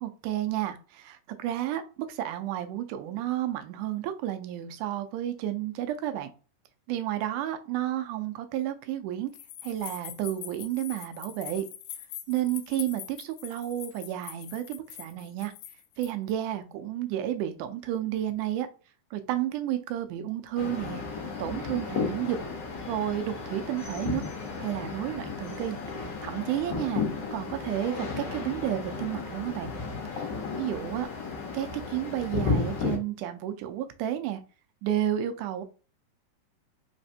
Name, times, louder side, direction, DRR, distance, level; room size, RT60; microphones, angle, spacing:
voice 1, 0.0-6.3 6.9-9.3 9.6-11.7 12.3-15.5 16.0-18.7 19.1-21.0 21.4-22.4 22.9-24.2 24.6-25.8 26.2-27.0 27.3-29.7 30.1-30.3 30.6-31.1 31.5-34.4 34.8-35.6, right 12 dB, 85° right, 9 dB, 2.1 m, -31 dB
sound 1, 9.3-16.3, left 12 dB, 80° left, 1.9 m, -43 dB
sound 2, 20.6-33.0, left 4 dB, 60° left, 2.1 m, -33 dB
5.1 x 3.2 x 2.7 m, 0.35 s
omnidirectional pair, 3.5 m